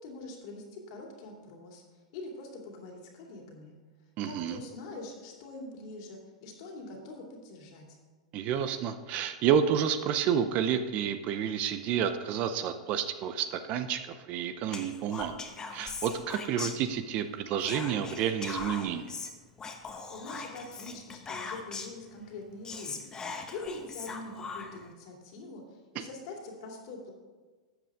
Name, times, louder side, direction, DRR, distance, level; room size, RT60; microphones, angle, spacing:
voice 1, 0.0-3.8 4.2-8.0 20.1-23.0 23.5-27.1, left 2 dB, 60° left, 0 dB, 2.6 m, -44 dB
voice 2, 4.2-4.6 8.3-15.3 15.7-19.1, right 8 dB, 45° right, 10 dB, 0.7 m, -30 dB
Whispering, 14.7-17.2 17.6-22.0 22.4-22.5 22.6-24.9, left 4 dB, 20° left, 1.2 m, -40 dB
12.5 x 7.7 x 3.6 m, 1.4 s
hypercardioid pair, 110°, 3 cm